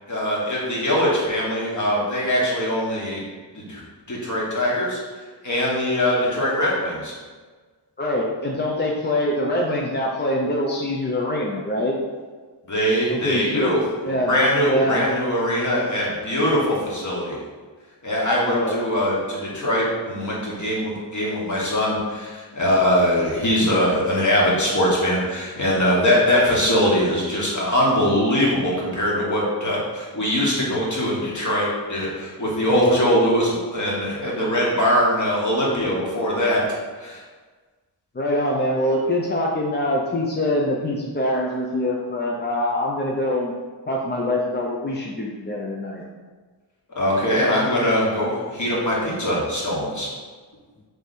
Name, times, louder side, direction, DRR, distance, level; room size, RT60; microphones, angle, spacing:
voice 1, 0.1-3.2 3.5-3.8 4.1-5.0 5.4-7.1 12.7-13.8 14.1-17.4 18.0-36.6 37.0-37.2 46.9-50.1, equal, 40° left, -5 dB, 1.3 m, -22 dB
voice 2, 8.0-12.0 13.1-13.7 14.0-14.3 14.7-15.0 18.5-18.7 32.7-33.0 38.1-43.5 43.9-46.0, left 1 dB, 25° left, -2 dB, 0.4 m, -24 dB
3.3 x 3.2 x 4.1 m, 1.4 s
wide cardioid pair, 85°, 44 cm